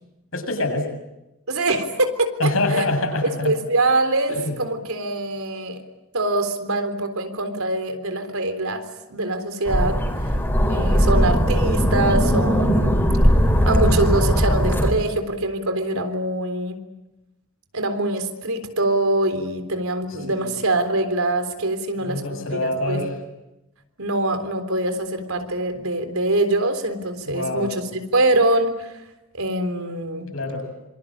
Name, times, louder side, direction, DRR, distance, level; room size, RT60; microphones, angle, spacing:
voice 1, 0.3-0.9 2.4-3.5 4.3-4.6 20.3-20.6 22.0-23.1 27.3-27.7 30.3-30.7, left 2 dB, 70° left, 4 dB, 7.4 m, -25 dB
voice 2, 1.5-2.9 3.2-5.8 6.1-10.0 10.7-13.1 13.7-16.8 17.7-23.0 24.0-28.9 29.3-30.3, right 2 dB, 80° right, 8 dB, 3.7 m, -24 dB
sound 1, 9.7-14.9, equal, 10° left, 4.2 m, -19 dB
26.5 x 25.0 x 8.8 m, 0.96 s
head